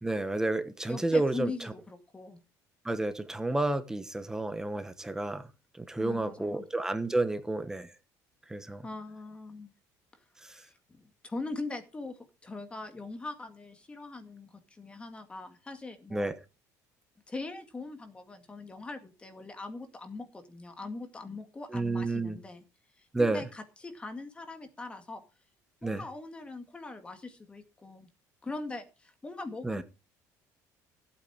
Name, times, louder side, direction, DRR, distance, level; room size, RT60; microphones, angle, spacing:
voice 1, 0.0-1.5 2.8-5.4 5.8-7.9 8.5-8.8 16.1-16.4 21.7-22.4 23.1-23.4 25.8-26.0 29.6-29.8, right 2 dB, 10° right, 1.1 m, -30 dB
voice 2, 0.8-2.4 6.0-6.7 8.8-9.7 10.5-16.3 17.3-22.6 23.0-25.2 25.8-28.1 28.4-29.8, left 3 dB, 15° left, 2.0 m, -41 dB
15.5 x 8.8 x 4.8 m
cardioid pair, 155°, 7 cm